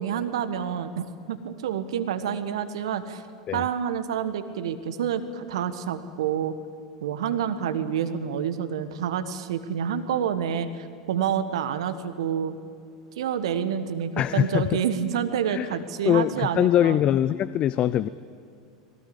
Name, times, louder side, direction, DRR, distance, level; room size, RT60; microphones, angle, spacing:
voice 1, 0.0-3.2 3.5-6.5 7.0-12.6 13.2-17.0, right 8 dB, 65° right, 11 dB, 1.3 m, -28 dB
voice 2, 14.2-14.8 15.5-18.1, left 11 dB, 35° left, 16 dB, 0.5 m, -23 dB
21.0 x 18.0 x 8.6 m, 2.4 s
figure-of-eight pair, 85°, 3 cm